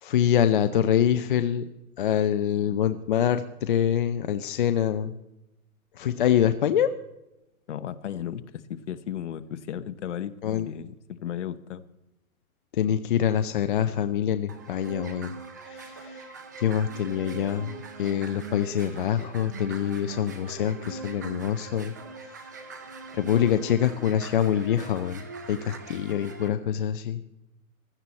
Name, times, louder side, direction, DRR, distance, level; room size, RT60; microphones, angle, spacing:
voice 1, 0.0-1.7 2.0-5.2 6.0-6.9 10.4-10.7 12.7-15.3 15.6-16.3 16.6-21.9 22.2-22.4 23.1-27.3, left 9 dB, 35° left, 10 dB, 0.6 m, -25 dB
voice 2, 7.7-10.3 10.6-11.8, left 10 dB, 55° left, 13 dB, 1.0 m, -35 dB
sound 1, 14.5-26.5, right 4 dB, 15° right, 0.4 m, -41 dB
16.0 x 13.5 x 4.2 m, 0.93 s
hypercardioid pair, 160°, 43 cm